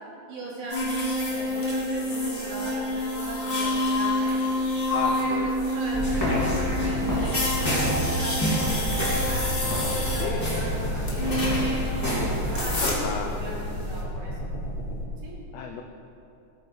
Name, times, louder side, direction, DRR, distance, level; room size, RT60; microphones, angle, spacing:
voice 1, 0.3-4.4 5.1-9.5 9.9-14.3 15.2-15.4, right 1 dB, 75° right, -5 dB, 4.0 m, -38 dB
sound 1, 0.7-14.0, left 1 dB, 25° left, 1.3 m, -28 dB
voice 2, 3.4-3.8 4.9-5.5 10.2-10.4 12.8-13.4 15.5-15.8, left 7 dB, 85° left, 4 dB, 1.5 m, -34 dB
sound 2, 5.9-12.9, equal, 5° left, 2.5 m, -28 dB
sound 3, 8.6-15.1, equal, 60° left, 2.3 m, -33 dB
15.5 x 9.5 x 3.6 m, 2.7 s
omnidirectional pair, 3.7 m